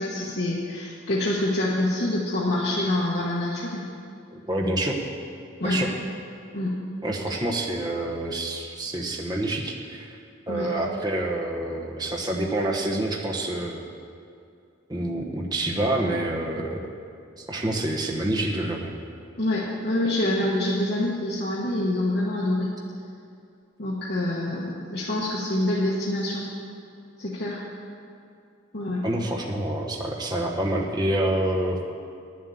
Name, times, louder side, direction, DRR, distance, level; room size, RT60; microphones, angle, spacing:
voice 1, 0.0-3.8 5.6-5.8 6.5-6.7 7.3-7.4 10.5-10.7 19.4-22.7 23.8-26.5 27.2-27.6 28.7-29.0, left 1 dB, 50° left, -6 dB, 1.3 m, -26 dB
voice 2, 4.3-5.0 5.6-5.9 7.0-10.2 10.5-13.8 14.9-16.8 17.4-18.9 29.0-31.8, right 1 dB, 20° right, -1 dB, 0.9 m, -27 dB
10.0 x 7.5 x 8.4 m, 2.4 s
head